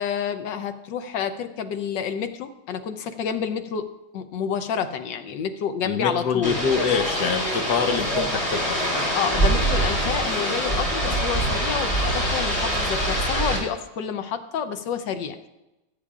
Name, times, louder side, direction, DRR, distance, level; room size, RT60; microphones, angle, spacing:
voice 1, 0.0-3.9 4.1-6.6 9.1-15.5, left 7 dB, 85° left, 8 dB, 1.5 m, -29 dB
voice 2, 5.8-8.8 11.1-11.2, left 6 dB, 70° left, 7 dB, 1.4 m, -25 dB
sound 1, 6.4-13.6, right 1 dB, 15° left, 3.2 m, -24 dB
18.5 x 8.6 x 2.5 m, 0.95 s
omnidirectional pair, 1.9 m